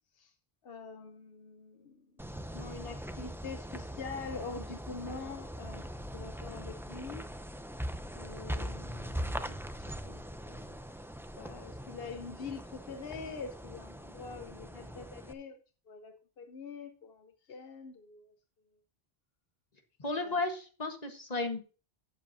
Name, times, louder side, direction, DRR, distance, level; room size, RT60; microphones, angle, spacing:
voice 1, 0.6-5.9 6.1-7.2 8.1-10.8 11.4-15.6 15.9-18.3 20.2-20.4, left 4 dB, 70° left, 1.1 m, -45 dB
sound 1, 2.2-15.3, equal, 5° right, 0.4 m, -41 dB
voice 2, 20.0-21.6, left 3 dB, 40° left, 1.5 m, -34 dB
11.5 x 8.2 x 2.7 m
omnidirectional pair, 1.0 m